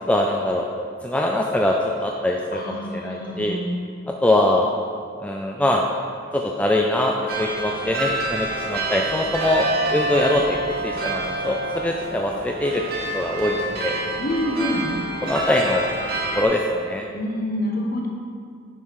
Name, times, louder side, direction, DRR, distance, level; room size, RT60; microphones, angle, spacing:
voice 1, 0.1-0.7 1.0-3.6 4.2-4.7 5.2-5.8 6.3-10.6 10.8-12.8 13.1-14.0 14.6-14.7 15.2-15.9 16.3-17.0, left 1 dB, 5° left, 0 dB, 0.3 m, -22 dB
voice 2, 2.5-3.6 14.2-14.9 15.2-15.3 17.1-18.1, left 1 dB, 45° left, 0 dB, 1.2 m, -27 dB
sound 1, 7.3-16.4, right 2 dB, 50° right, 1.2 m, -27 dB
9.8 x 5.5 x 4.8 m, 2.3 s
head